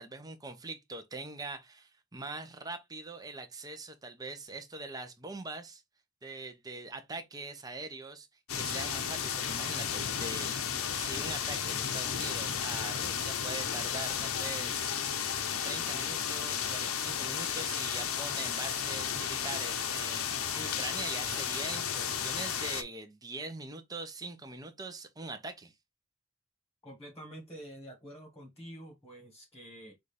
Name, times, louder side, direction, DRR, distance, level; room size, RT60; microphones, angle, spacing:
voice 1, 0.0-5.8 6.2-8.3 8.5-15.0 15.6-20.3 20.5-25.7, right 3 dB, 15° right, 0.6 m, -42 dB
sound 1, 8.5-22.8, left 8 dB, 85° left, 0.7 m, -33 dB
voice 2, 26.8-29.9, right 1 dB, 10° left, 1.5 m, -48 dB
6.4 x 2.5 x 3.3 m
head